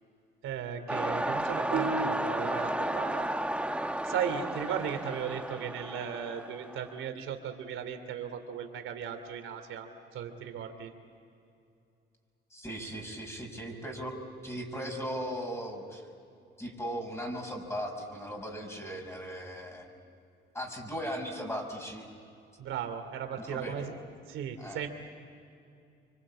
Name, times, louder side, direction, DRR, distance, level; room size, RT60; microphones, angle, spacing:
voice 1, 0.4-3.3 4.0-10.9 22.6-23.9 24.3-24.9, right 8 dB, 85° right, 7 dB, 2.9 m, -36 dB
sound 1, 0.9-7.1, right 1 dB, 5° right, 1.1 m, -33 dB
sound 2, 1.7-4.9, right 3 dB, 60° right, 3.1 m, -39 dB
voice 2, 12.5-16.1 16.6-19.9 20.5-22.1 23.4-23.9 24.6-24.8, equal, 15° left, 2 dB, 5.9 m, -38 dB
26.0 x 25.0 x 8.7 m, 2.6 s
cardioid pair, 90°, 20 cm